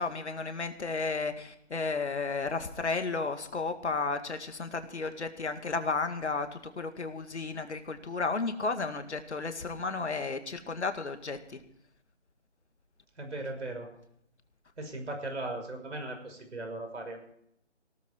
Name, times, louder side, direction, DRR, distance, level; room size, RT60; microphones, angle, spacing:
voice 1, 0.0-11.6, left 3 dB, 70° left, 8 dB, 2.2 m, -33 dB
voice 2, 13.2-13.9 14.8-17.3, right 2 dB, 70° right, 4 dB, 5.9 m, -38 dB
17.5 x 13.5 x 4.6 m, 0.73 s
figure-of-eight pair, 160°, 36 cm